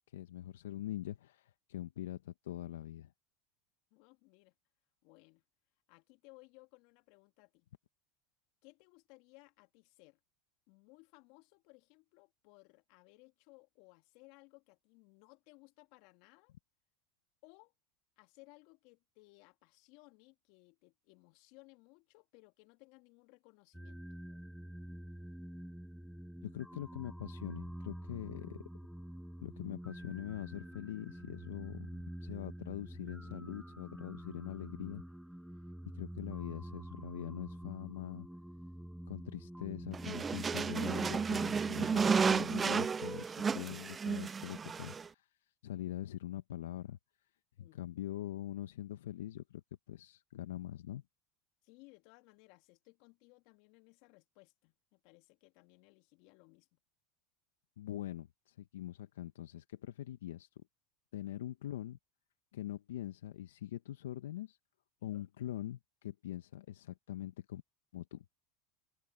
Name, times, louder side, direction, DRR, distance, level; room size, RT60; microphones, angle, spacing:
voice 1, 0.1-3.1 26.4-28.6 29.4-35.0 35.9-38.3 39.1-45.3 45.6-47.0 47.6-49.6 49.9-51.0 57.8-60.6 61.1-62.0 62.5-64.6 65.0-67.6 67.9-68.2, left 13 dB, 80° left, 1.2 m, -43 dB
voice 2, 3.9-4.5 5.0-5.4 5.9-7.7 8.6-10.2 10.7-16.5 17.4-17.7 18.2-24.0 47.6-47.9 51.6-56.8 65.1-65.3, left 26 dB, 65° left, 2.6 m, -62 dB
sound 1, 23.7-42.4, equal, ahead, 0.9 m, -47 dB
sound 2, 39.9-45.1, right 5 dB, 25° right, 0.3 m, -32 dB
hypercardioid pair, 85°, 0 cm